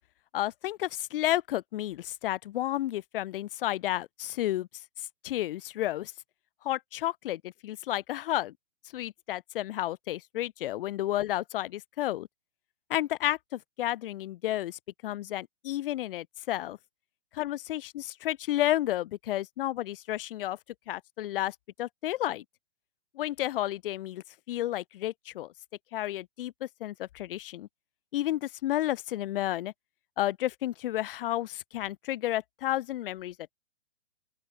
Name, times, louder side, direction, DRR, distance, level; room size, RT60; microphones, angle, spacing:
voice 1, 0.3-4.7 5.2-6.1 6.6-8.5 8.9-12.3 12.9-16.8 17.3-20.6 20.9-22.4 23.2-25.5 25.9-27.7 28.1-29.7 30.2-33.5, left 14 dB, 50° left, 6.1 m, -31 dB
open air
figure-of-eight pair, 120°, 36 cm